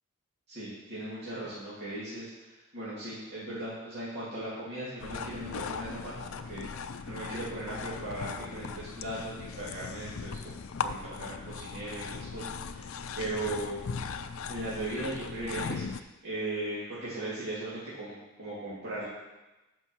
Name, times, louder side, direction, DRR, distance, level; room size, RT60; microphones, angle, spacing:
voice 1, 0.5-2.3 2.7-6.1 6.5-6.7 7.1-10.4 10.8-13.8 14.5-16.0 16.2-19.1, right 1 dB, 50° right, -10 dB, 2.6 m, -37 dB
sound 1, 5.0-16.0, left 5 dB, 70° left, 0.5 m, -38 dB
9.6 x 5.4 x 6.2 m, 1.1 s
head